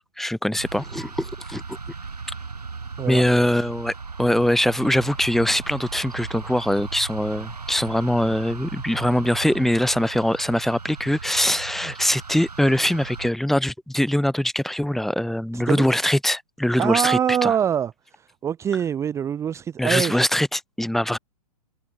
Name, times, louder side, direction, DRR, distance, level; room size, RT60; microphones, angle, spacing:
voice 1, 0.0-1.8 3.1-3.9 4.2-17.5 19.8-21.2, left 1 dB, ahead, 1.2 m, -22 dB
sound 1, 0.6-13.3, right 4 dB, 75° right, 5.5 m, -37 dB
voice 2, 15.5-15.8 16.8-20.3, right 9 dB, 15° right, 0.7 m, -24 dB
figure-of-eight pair, 105°, 20 cm